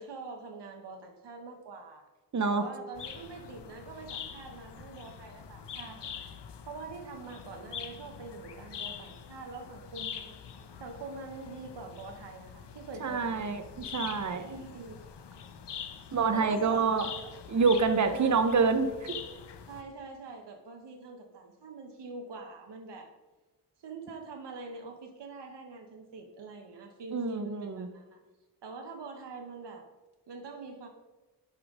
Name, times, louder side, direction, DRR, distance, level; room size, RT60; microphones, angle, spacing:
voice 1, 0.0-2.1 2.5-6.3 6.7-10.4 10.8-13.4 14.3-15.0 16.3-17.0 18.0-18.4 19.7-23.1 23.8-28.2 28.6-29.9 30.3-30.9, right 3 dB, 85° right, 3 dB, 0.9 m, -44 dB
voice 2, 2.3-2.6 13.0-14.4 16.1-17.1 17.5-19.2 27.1-27.9, right 4 dB, 45° right, 7 dB, 0.8 m, -27 dB
sound 1, 3.0-19.8, left 7 dB, 80° left, 0.8 m, -44 dB
11.0 x 5.2 x 3.5 m, 1.2 s
wide cardioid pair, 105°, 41 cm